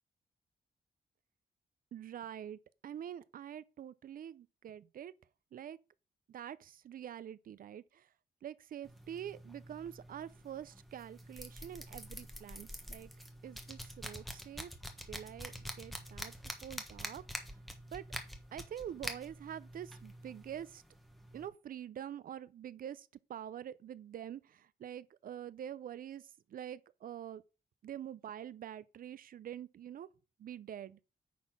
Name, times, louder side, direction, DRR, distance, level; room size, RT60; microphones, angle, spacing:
voice 1, 1.9-5.1 5.5-5.8 6.3-8.1 8.4-13.1 13.4-14.7 15.1-16.4 16.6-17.2 17.9-18.0 18.5-20.8 21.3-27.4 27.8-30.1 30.4-31.0, right 10 dB, 60° right, 0.5 m, -46 dB
sound 1, 8.8-21.5, equal, ahead, 1.2 m, -47 dB
9.3 x 4.2 x 5.9 m
wide cardioid pair, 155°, 16 cm